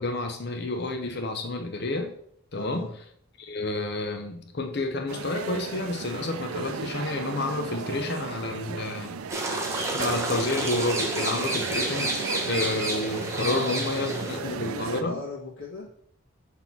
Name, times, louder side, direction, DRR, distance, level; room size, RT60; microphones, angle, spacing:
voice 1, 0.0-2.1 2.5-2.9 3.4-9.2 9.9-15.2, left 2 dB, 50° left, 5 dB, 0.6 m, -30 dB
voice 2, 2.5-2.9 13.4-15.9, left 2 dB, 75° left, -8 dB, 1.9 m, -36 dB
sound 1, 5.1-15.0, right 5 dB, 85° right, 0.5 m, -36 dB
sound 2, 9.3-14.4, right 2 dB, 15° right, 1.0 m, -30 dB
5.9 x 3.8 x 5.9 m, 0.66 s
head